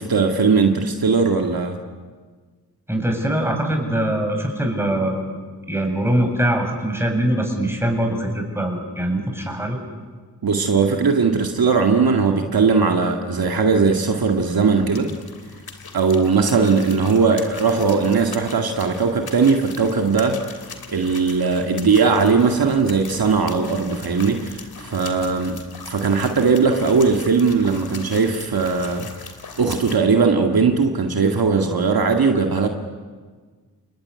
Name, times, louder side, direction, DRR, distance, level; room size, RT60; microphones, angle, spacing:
voice 1, 0.0-1.8 10.4-15.1 15.9-20.4 20.9-29.1 29.6-32.7, right 5 dB, 65° right, 4 dB, 2.1 m, -19 dB
voice 2, 2.9-5.2 5.7-9.8, right 1 dB, 5° right, 2 dB, 7.2 m, -22 dB
sound 1, 13.8-30.0, left 5 dB, 70° left, 3.1 m, -40 dB
29.5 x 20.0 x 9.6 m, 1.5 s
cardioid pair, 55°, 39 cm